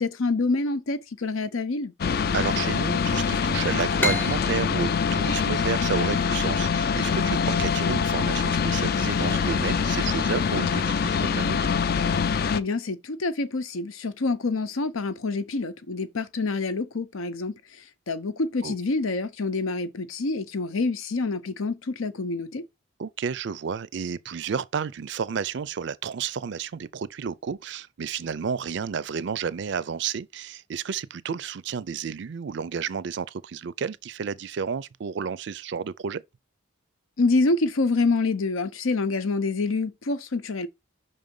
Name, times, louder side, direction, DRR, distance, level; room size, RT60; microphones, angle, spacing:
voice 1, 0.0-1.9 12.5-17.5 18.1-22.6 37.2-40.7, left 3 dB, 90° left, 0.8 m, -26 dB
sound 1, 2.0-12.6, left 6 dB, 50° left, 0.4 m, -24 dB
voice 2, 2.3-11.6 18.6-18.7 23.0-36.2, right 6 dB, 55° right, 0.4 m, -31 dB
sound 2, 4.0-7.4, left 2 dB, 10° left, 0.8 m, -33 dB
5.5 x 3.8 x 5.3 m
head